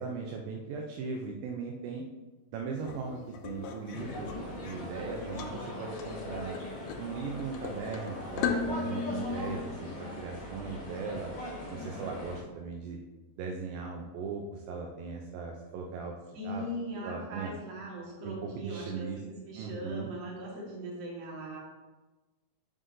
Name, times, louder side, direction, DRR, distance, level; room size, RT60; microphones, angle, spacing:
voice 1, 0.0-2.0 2.5-6.6 7.0-11.3 11.7-13.0 13.4-16.6 17.0-17.5 18.2-19.2 19.6-20.1, right 5 dB, 80° right, 1 dB, 2.4 m, -38 dB
sound 1, 2.8-9.5, left 5 dB, 85° left, 2.3 m, -38 dB
sound 2, 3.9-12.4, left 1 dB, 50° left, 2.8 m, -40 dB
voice 2, 16.3-21.6, equal, 55° right, -4 dB, 2.6 m, -40 dB
7.3 x 6.7 x 2.6 m, 1.2 s
omnidirectional pair, 4.2 m